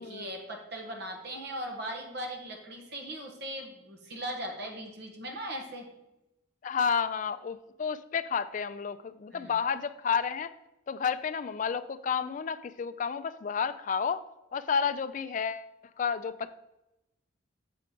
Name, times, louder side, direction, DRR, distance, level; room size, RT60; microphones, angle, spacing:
voice 1, 0.0-5.9 9.3-9.5, right 1 dB, 55° right, 2 dB, 1.3 m, -39 dB
voice 2, 6.6-10.5 10.9-14.2 14.5-15.7 16.0-16.6, left 6 dB, 40° left, 13 dB, 0.3 m, -31 dB
7.1 x 4.4 x 5.0 m, 0.92 s
head